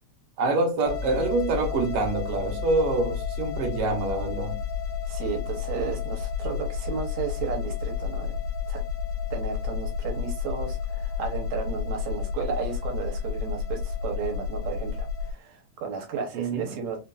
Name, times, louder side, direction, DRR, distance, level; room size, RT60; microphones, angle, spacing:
voice 1, 0.4-4.6 16.3-16.8, right 3 dB, 60° right, 1.8 m, -26 dB
sound 1, 0.8-15.3, left 6 dB, 70° left, 1.6 m, -31 dB
voice 2, 5.1-8.4 8.7-8.8 9.3-17.0, right 6 dB, 75° right, 2.1 m, -33 dB
5.2 x 2.5 x 2.4 m
omnidirectional pair, 3.3 m